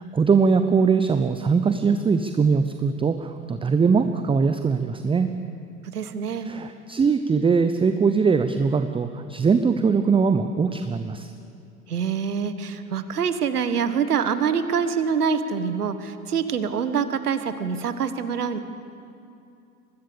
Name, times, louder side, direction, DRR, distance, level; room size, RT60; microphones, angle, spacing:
voice 1, 0.0-5.3 6.5-11.3, right 5 dB, 10° right, 9 dB, 0.8 m, -21 dB
voice 2, 5.8-6.5 11.9-18.6, right 6 dB, 80° right, 11 dB, 1.5 m, -25 dB
24.5 x 20.0 x 7.0 m, 2.6 s
figure-of-eight pair, 85°, 45 cm